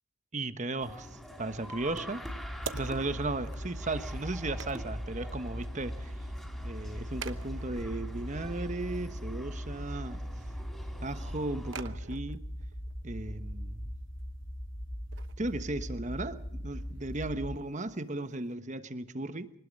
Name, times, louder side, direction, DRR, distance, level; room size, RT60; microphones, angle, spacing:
voice 1, 0.3-2.2 2.7-6.1 6.6-10.2 11.0-12.5 13.0-13.9 15.4-19.5, right 2 dB, 35° right, 1.2 m, -36 dB
sound 1, 0.8-11.8, equal, ahead, 3.6 m, -46 dB
sound 2, 0.9-18.5, right 5 dB, 65° right, 1.1 m, -51 dB
sound 3, 2.2-17.6, equal, 40° left, 1.6 m, -40 dB
25.0 x 19.5 x 5.4 m
head